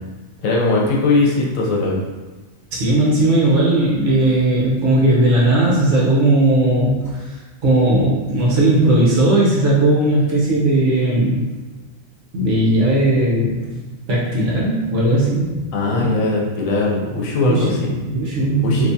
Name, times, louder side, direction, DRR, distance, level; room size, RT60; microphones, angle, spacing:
voice 1, 0.4-2.0 15.7-18.0 18.6-18.9, left 2 dB, 75° left, -2 dB, 1.1 m, -19 dB
voice 2, 2.7-7.4 7.6-11.4 12.3-13.8 14.1-15.6 15.9-16.1 17.4-18.9, right 1 dB, 65° right, -6 dB, 1.3 m, -17 dB
3.5 x 3.0 x 2.7 m, 1.3 s
omnidirectional pair, 1.4 m